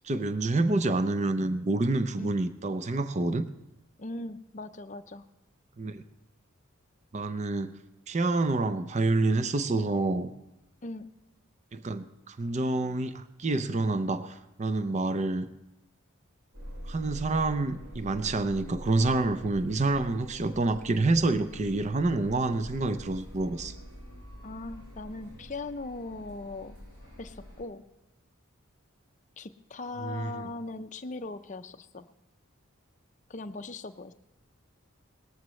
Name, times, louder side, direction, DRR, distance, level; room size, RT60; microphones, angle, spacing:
voice 1, 0.0-3.5 5.8-6.0 7.1-7.8 8.1-10.3 11.7-15.5 16.9-23.7 30.0-30.5, right 2 dB, 35° right, 11 dB, 0.5 m, -28 dB
voice 2, 4.0-5.2 10.8-11.1 24.4-26.8 27.2-27.8 29.4-32.1 33.3-34.1, left 2 dB, 35° left, 9 dB, 0.5 m, -39 dB
sound 1, 16.5-27.6, equal, 80° right, 6.6 m, -45 dB
19.0 x 14.0 x 3.1 m, 0.93 s
head